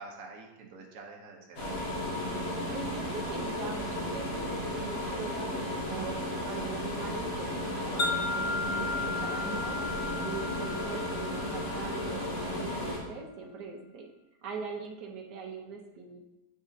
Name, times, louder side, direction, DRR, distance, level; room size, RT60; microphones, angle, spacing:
voice 1, 0.0-1.8 8.7-9.0, right 3 dB, 60° right, 0 dB, 1.3 m, -47 dB
sound 1, 1.6-13.0, left 1 dB, 85° left, 2.0 m, -34 dB
voice 2, 2.7-9.8 10.2-14.1 14.4-16.3, right 5 dB, 85° right, 0 dB, 1.5 m, -41 dB
Wind chime, 8.0-12.3, left 3 dB, 55° left, 0.5 m, -35 dB
8.7 x 5.0 x 2.7 m, 0.98 s
omnidirectional pair, 1.8 m